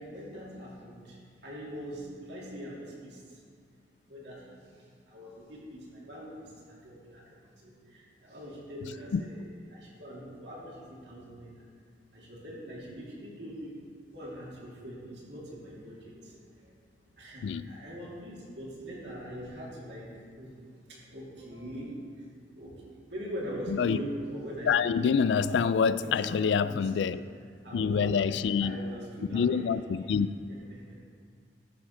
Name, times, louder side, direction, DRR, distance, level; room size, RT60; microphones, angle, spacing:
voice 1, 0.0-3.5 4.1-9.4 9.7-11.6 12.1-13.8 14.1-16.8 17.2-20.6 20.9-27.1 27.6-29.6 30.7-30.9, equal, 70° right, 2.9 m, -42 dB
voice 2, 24.7-27.2 27.7-28.8 29.3-30.3, left 6 dB, 80° left, 0.3 m, -26 dB
13.0 x 4.9 x 5.8 m
head